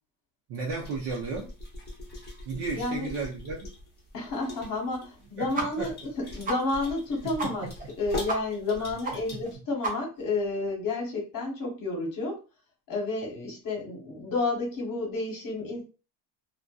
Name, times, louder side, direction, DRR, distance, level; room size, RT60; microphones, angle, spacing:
voice 1, 0.5-1.5 2.5-3.7 5.4-5.9 6.2-6.3 7.4-7.7 9.3-9.4, right 4 dB, 65° right, 0.7 m, -34 dB
mostly empty soda can shaking by tab, 0.7-9.5, left 2 dB, 20° left, 0.8 m, -42 dB
voice 2, 2.7-3.1 4.1-7.7 8.0-12.4 12.9-15.8, left 2 dB, 45° left, 1.1 m, -31 dB
sound 1, 5.5-5.7 6.0-6.1 6.4-6.6 7.0-7.1 7.4-7.5 7.8-7.9 8.3-8.4 8.7-8.8 9.0-9.1 9.4-9.5 9.8-10.2, right 3 dB, 20° right, 0.4 m, -31 dB
2.5 x 2.2 x 2.3 m
cardioid pair, 145°, 46 cm